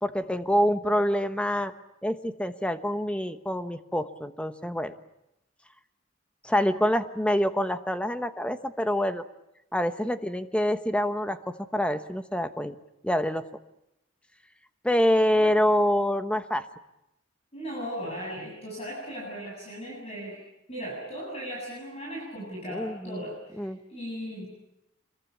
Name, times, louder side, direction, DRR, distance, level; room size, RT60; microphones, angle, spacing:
voice 1, 0.0-1.7 2.0-4.9 6.4-9.2 9.7-12.7 13.0-13.4 14.8-16.7 22.7-23.2 23.6-23.8, equal, 5° left, 9 dB, 1.1 m, -26 dB
voice 2, 17.5-20.4 20.7-24.5, equal, 30° left, -3 dB, 7.7 m, -37 dB
26.0 x 22.5 x 8.5 m, 0.87 s
head